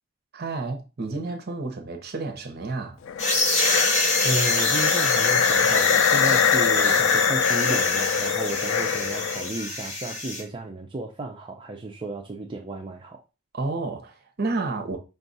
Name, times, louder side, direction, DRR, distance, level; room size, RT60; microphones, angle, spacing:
voice 1, 0.3-3.0 13.5-15.0, right 3 dB, 50° right, 0.8 m, -30 dB
sound 1, 3.1-9.5, left 7 dB, 65° left, 0.3 m, -23 dB
sound 2, 3.2-10.4, left 2 dB, 35° left, 1.2 m, -26 dB
voice 2, 4.2-13.2, right 2 dB, 25° right, 0.5 m, -33 dB
5.4 x 2.4 x 4.0 m
head